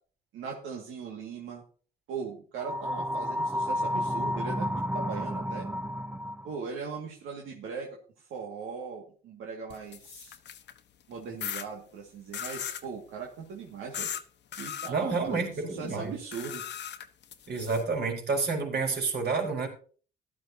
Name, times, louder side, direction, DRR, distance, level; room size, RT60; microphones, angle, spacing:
voice 1, 0.3-1.6 2.1-4.7 4.9-5.7 6.4-7.9 8.2-10.4 11.1-14.1 14.6-16.6, right 5 dB, 85° right, -1 dB, 2.1 m, -39 dB
sound 1, 2.6-6.6, equal, 5° right, 0.6 m, -31 dB
sound 2, 9.7-10.8 11.4-11.7 12.3-12.9 13.9-14.2 14.5-14.9 16.3-17.8, left 9 dB, 60° left, 1.1 m, -37 dB
voice 2, 14.9-16.1 17.5-19.7, right 4 dB, 55° right, 1 dB, 4.9 m, -29 dB
15.0 x 12.0 x 2.8 m, 0.41 s
cardioid pair, 90°, 20 cm